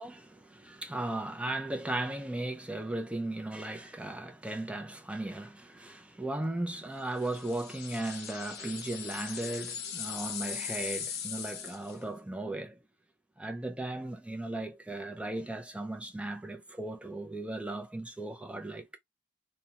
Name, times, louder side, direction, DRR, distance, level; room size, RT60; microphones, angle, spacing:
voice 1, 0.0-12.8 13.4-19.0, right 2 dB, 5° right, 0.4 m, -36 dB
sound 1, 7.2-12.0, left 8 dB, 55° left, 0.6 m, -39 dB
2.4 x 2.1 x 2.8 m
head